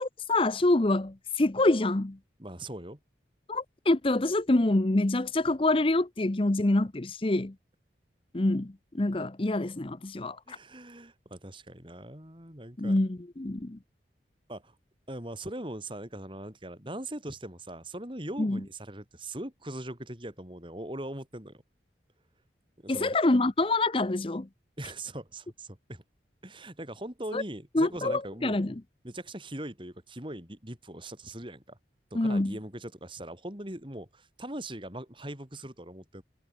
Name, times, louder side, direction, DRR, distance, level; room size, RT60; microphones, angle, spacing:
voice 1, 0.0-2.2 3.5-7.5 8.3-10.6 12.8-13.8 18.4-18.6 22.9-24.5 27.3-27.4 27.7-28.7 32.1-32.5, left 2 dB, 30° left, 0.7 m, -26 dB
voice 2, 2.4-3.0 10.5-13.0 14.5-14.7 15.1-21.6 22.8-23.2 24.8-26.0 26.4-28.6 29.0-31.8 32.1-36.2, right 1 dB, 30° right, 4.7 m, -40 dB
head